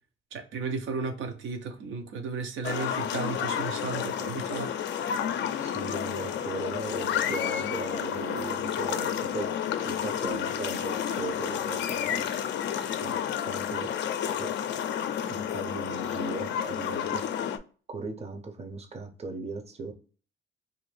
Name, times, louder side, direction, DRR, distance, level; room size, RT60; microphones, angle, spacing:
voice 1, 0.3-4.7, right 4 dB, 75° right, 0.7 m, -34 dB
sound 1, 2.6-17.6, left 9 dB, 65° left, 0.4 m, -31 dB
voice 2, 5.6-9.5 9.8-12.2 13.0-13.9 14.4-14.5 15.3-17.2 17.9-19.9, right 3 dB, 30° right, 0.6 m, -38 dB
2.6 x 2.5 x 3.1 m
cardioid pair, 90°, 20 cm